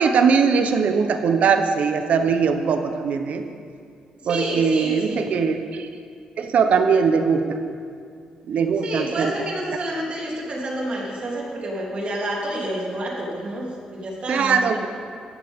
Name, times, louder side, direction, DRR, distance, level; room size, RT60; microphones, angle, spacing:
voice 1, 0.0-3.4 4.3-5.9 6.4-7.6 8.5-9.3 14.3-14.9, right 5 dB, 70° right, 7 dB, 0.9 m, -20 dB
voice 2, 4.2-5.3 8.8-14.8, right 1 dB, 50° right, -3 dB, 3.2 m, -29 dB
15.5 x 14.0 x 3.7 m, 2.2 s
cardioid pair, 100°, 2 cm